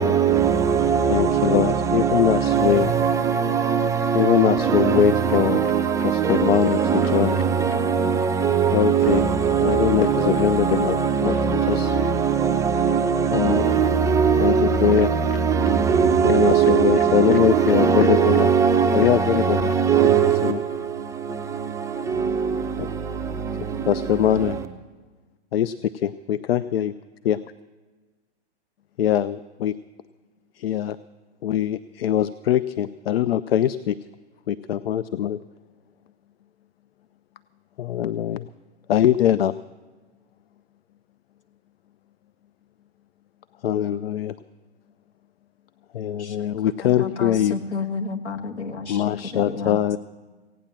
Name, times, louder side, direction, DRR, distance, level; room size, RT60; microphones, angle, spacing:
voice 1, 0.0-24.6, right 7 dB, 10° right, 0.4 m, -21 dB
voice 2, 1.1-2.9 4.1-5.6 6.0-7.4 8.7-9.3 9.6-11.4 11.7-12.0 13.3-13.7 14.4-15.1 16.2-18.5 18.9-19.7 20.2-20.6 22.8-22.9 23.9-24.6 25.5-25.7 26.0-26.9 27.2-27.4 29.0-29.8 30.5-31.0 31.4-34.0 34.5-35.4 37.8-38.5 38.9-39.6 43.6-44.4 45.9-47.6 48.9-50.0, left 10 dB, 65° left, 0.5 m, -22 dB
voice 3, 46.8-49.8, left 4 dB, 85° left, 1.5 m, -31 dB
16.5 x 9.0 x 7.3 m
figure-of-eight pair, 115°, 33 cm